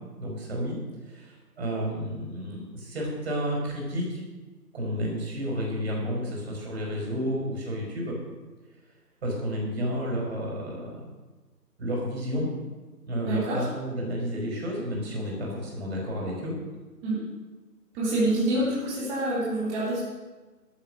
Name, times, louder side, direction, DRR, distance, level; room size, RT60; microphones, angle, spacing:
voice 1, 0.2-0.8 1.1-4.2 4.7-8.2 9.2-11.0 11.8-12.5 13.1-16.5, equal, 40° right, -1 dB, 5.2 m, -31 dB
voice 2, 13.2-13.7 17.0-17.2 18.0-20.0, right 1 dB, 10° right, -8 dB, 2.3 m, -26 dB
12.5 x 9.0 x 6.4 m, 1.2 s
figure-of-eight pair, 155°, 48 cm